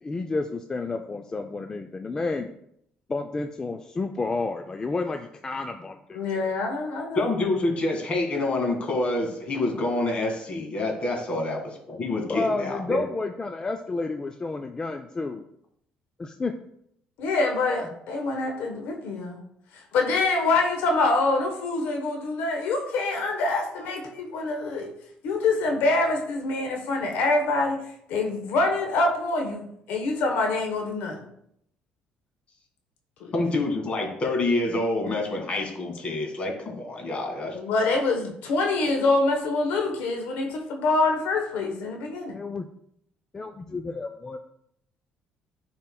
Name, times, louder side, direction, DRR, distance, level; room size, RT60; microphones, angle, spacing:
voice 1, 0.0-2.5 3.1-6.5 12.3-15.4 16.2-16.5 42.3-42.7 43.3-44.4, left 3 dB, 25° left, 5 dB, 0.4 m, -31 dB
voice 2, 6.1-7.2 17.2-19.4 19.7-24.9 25.2-27.8 28.1-31.3 33.2-33.3 37.5-42.4, left 3 dB, 80° left, 3 dB, 1.0 m, -25 dB
voice 3, 7.1-11.6 11.9-13.0 33.3-37.6, left 2 dB, 40° left, 1 dB, 2.0 m, -27 dB
10.5 x 4.4 x 2.3 m, 0.72 s
cardioid pair, 100°, 3 cm